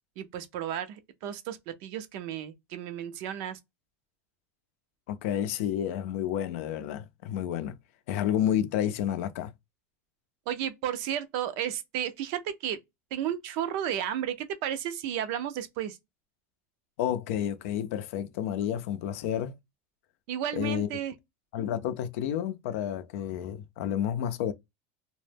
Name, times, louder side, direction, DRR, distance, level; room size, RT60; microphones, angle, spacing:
voice 1, 0.2-3.6 10.5-12.8 13.1-16.0 20.3-21.1, right 10 dB, 65° right, 0.5 m, -33 dB
voice 2, 5.1-7.8 8.1-9.5 17.0-19.5 20.5-20.9 21.5-24.5, left 10 dB, 75° left, 0.4 m, -30 dB
2.1 x 2.0 x 3.2 m
supercardioid pair, 115°, 7 cm